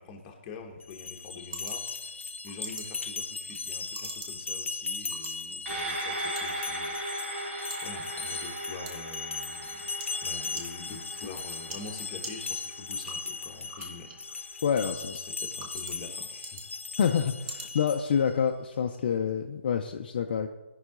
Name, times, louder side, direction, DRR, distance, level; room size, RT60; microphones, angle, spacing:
voice 1, 0.0-2.2 2.4-9.9 10.2-14.6 15.1-16.7, left 4 dB, 20° left, 2 dB, 0.9 m, -45 dB
sound 1, 0.6-18.6, right 3 dB, 20° right, 0.9 m, -48 dB
sound 2, 0.8-18.3, left 4 dB, 75° left, 0.7 m, -38 dB
sound 3, 5.7-14.3 14.7-14.8, right 1 dB, 85° right, 3.1 m, -38 dB
voice 2, 14.6-15.2 17.0-20.5, left 7 dB, 45° left, 4 dB, 0.5 m, -27 dB
13.0 x 5.6 x 3.7 m, 1.1 s
hypercardioid pair, 160°, 7 cm